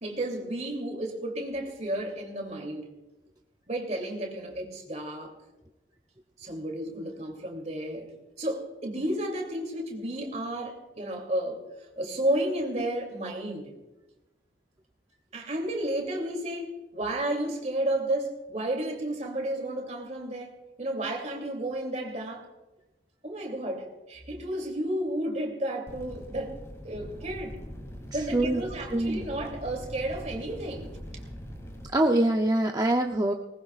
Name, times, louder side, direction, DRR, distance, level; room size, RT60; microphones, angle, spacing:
voice 1, 0.0-2.9 3.7-5.3 6.4-8.1 8.4-11.6 12.0-13.7 15.3-22.5 23.2-26.6 26.8-27.6 28.1-30.9, right 1 dB, 40° right, 2 dB, 2.8 m, -32 dB
sound 1, 25.9-31.9, equal, 15° left, 2.4 m, -42 dB
voice 2, 28.3-28.6 28.9-29.2 31.9-33.3, right 1 dB, 20° right, 2 dB, 0.6 m, -24 dB
19.5 x 19.5 x 2.4 m, 1.1 s
head